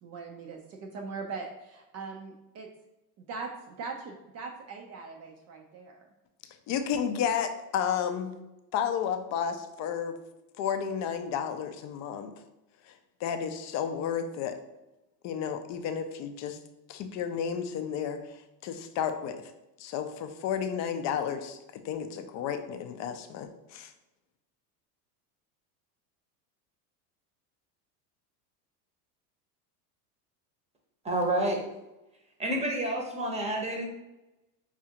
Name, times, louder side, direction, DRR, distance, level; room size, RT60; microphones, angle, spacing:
voice 1, 0.0-2.7 3.2-6.1, right 4 dB, 35° right, 2 dB, 0.4 m, -41 dB
voice 2, 6.4-8.4 8.7-10.2 10.6-12.3 12.9-14.6 15.2-16.6 16.9-19.4 19.8-21.6 21.8-23.9, left 8 dB, 40° left, 8 dB, 0.4 m, -32 dB
voice 3, 31.0-31.6 32.4-33.8, right 1 dB, 15° right, 0 dB, 0.8 m, -29 dB
4.7 x 2.4 x 2.8 m, 0.96 s
hypercardioid pair, 95°, 49 cm